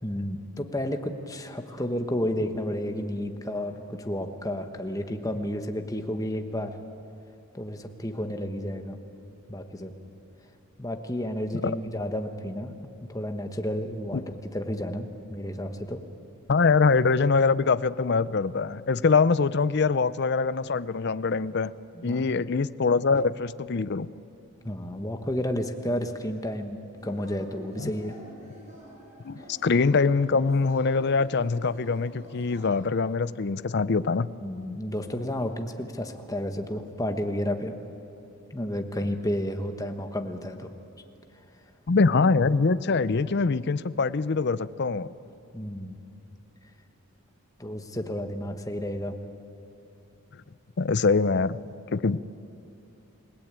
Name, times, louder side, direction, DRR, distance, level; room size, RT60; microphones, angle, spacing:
voice 1, 0.0-6.8 7.5-9.0 9.5-9.9 10.8-16.1 21.9-22.3 24.6-28.2 34.4-37.7 38.5-40.7 45.5-46.0 47.6-49.1, left 1 dB, 15° left, 6 dB, 1.3 m, -31 dB
voice 2, 16.5-21.7 22.0-24.1 27.8-27.9 29.2-34.3 41.9-45.1 50.8-51.6 51.9-52.3, left 4 dB, 50° left, 16 dB, 0.5 m, -23 dB
Yell / Cheering, 27.0-33.1, right 1 dB, 30° right, 6.7 m, -49 dB
29.0 x 17.5 x 8.9 m, 2.7 s
head